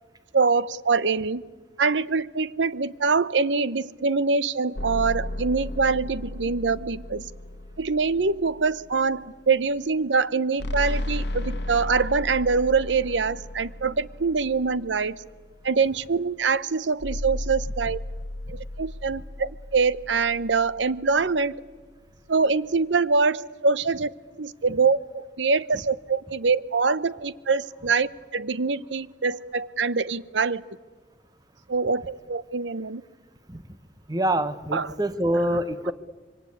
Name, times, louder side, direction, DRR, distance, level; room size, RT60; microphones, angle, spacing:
voice 1, 0.3-1.4 1.8-7.3 7.8-15.2 15.6-18.0 18.5-21.6 22.3-24.1 24.4-30.6 31.7-33.0 34.7-34.9, right 4 dB, 90° right, 16 dB, 0.8 m, -24 dB
sound 1, 4.8-9.2 10.6-15.4 17.0-21.4, left 1 dB, 65° left, 1.2 m, -34 dB
voice 2, 34.1-35.9, right 1 dB, 20° right, 12 dB, 1.1 m, -25 dB
26.0 x 23.5 x 8.6 m, 1.4 s
head